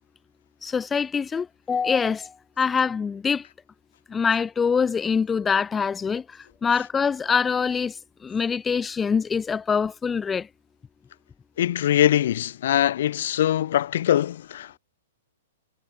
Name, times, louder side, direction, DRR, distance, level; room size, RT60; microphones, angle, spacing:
voice 1, 0.6-3.5 4.1-10.5, left 6 dB, 15° left, 0.7 m, -24 dB
voice 2, 11.6-14.8, left 11 dB, 55° left, 0.3 m, -22 dB
figure-of-eight pair, 110°, 0 cm